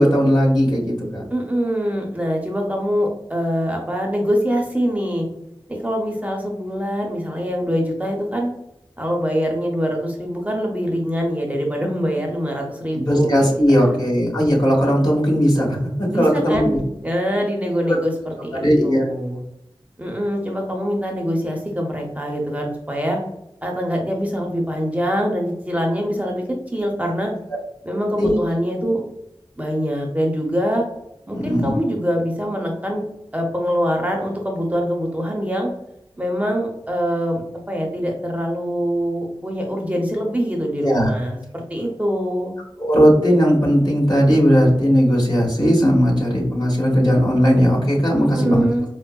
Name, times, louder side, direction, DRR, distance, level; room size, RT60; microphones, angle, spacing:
voice 1, 0.0-1.2 13.1-16.8 18.6-19.0 28.2-28.3 31.3-31.7 40.8-41.1 42.8-48.6, equal, 50° left, -3 dB, 1.3 m, -17 dB
voice 2, 1.3-5.3 5.7-8.5 9.0-14.1 16.1-19.4 20.0-23.2 23.6-26.4 26.7-27.3 27.8-29.0 29.6-30.9 31.3-33.0 33.3-35.7 36.2-37.4 37.7-42.5 48.1-48.8, equal, 15° right, 0 dB, 0.6 m, -24 dB
4.4 x 2.1 x 2.2 m, 0.82 s
wide cardioid pair, 65°, 9 cm